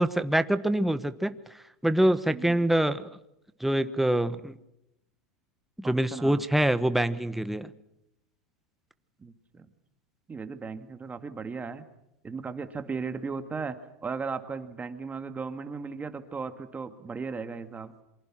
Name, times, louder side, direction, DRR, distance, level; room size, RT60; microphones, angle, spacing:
voice 1, 0.0-1.3 1.8-3.1 3.6-4.6 5.8-7.7, right 1 dB, 5° right, 12 dB, 1.2 m, -25 dB
voice 2, 5.8-6.4 9.2-9.7 10.3-11.8 12.2-13.8 14.0-17.9, right 5 dB, 20° right, 9 dB, 2.1 m, -36 dB
27.0 x 24.0 x 6.3 m, 0.85 s
supercardioid pair, 110°, 8 cm